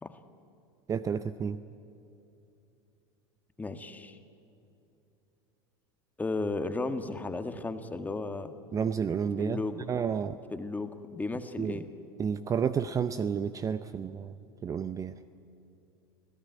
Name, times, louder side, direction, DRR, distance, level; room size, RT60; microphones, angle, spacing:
voice 1, 0.9-1.6 8.7-9.6 9.9-10.4 11.6-11.8 12.2-14.3 14.6-15.1, right 7 dB, 25° right, 13 dB, 0.7 m, -30 dB
voice 2, 3.6-4.2 6.2-8.5 9.4-9.9 10.5-11.9, left 3 dB, 10° left, 8 dB, 1.7 m, -34 dB
26.5 x 16.5 x 9.4 m, 2.8 s
hypercardioid pair, 85°, 13 cm